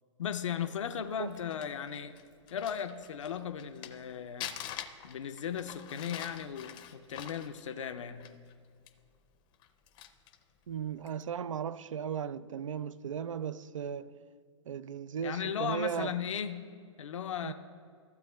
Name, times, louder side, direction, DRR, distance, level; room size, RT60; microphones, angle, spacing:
voice 1, 0.2-2.1 2.5-4.5 5.0-8.3 15.2-16.7 17.0-17.5, left 8 dB, 75° left, 0.5 m, -36 dB
Crumpling crinkling, 1.1-4.0 4.4-8.5 8.9-9.0 9.5-10.4 11.0-11.2, left 11 dB, 30° left, 0.6 m, -45 dB
voice 2, 10.7-14.2 14.7-16.1 17.4-17.5, right 8 dB, 85° right, 0.4 m, -36 dB
15.5 x 7.6 x 2.3 m
hypercardioid pair, 115°, 16 cm